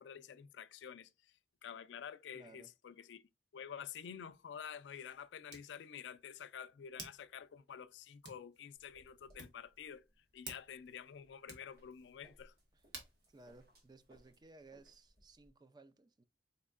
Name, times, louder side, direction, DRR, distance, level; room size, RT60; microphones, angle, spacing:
voice 1, 0.0-1.3 1.6-3.2 3.5-10.0 10.3-12.5, left 8 dB, 90° left, 0.4 m, -49 dB
voice 2, 2.3-2.7 12.7-12.8 13.3-16.2, right 3 dB, 25° right, 0.3 m, -59 dB
Hands, 3.9-14.7, right 3 dB, 80° right, 1.4 m, -57 dB
sound 1, 8.8-15.5, equal, 60° right, 2.0 m, -68 dB
4.3 x 4.1 x 2.3 m
head